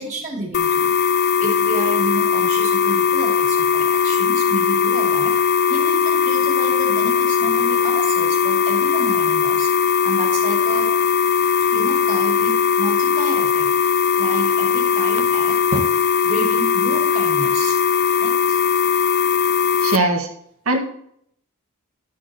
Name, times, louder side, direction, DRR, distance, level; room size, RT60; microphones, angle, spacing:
voice 1, 0.0-9.7 10.0-10.9 11.7-13.7 13.9-15.6 16.2-17.8 18.2-18.6, right 2 dB, 30° right, -2 dB, 2.6 m, -31 dB
sound 1, 0.5-20.0, left 6 dB, 50° left, 0.5 m, -19 dB
voice 2, 19.8-20.3 20.6-20.8, right 2 dB, 70° right, 3 dB, 1.6 m, -19 dB
12.0 x 5.3 x 4.3 m, 0.68 s
head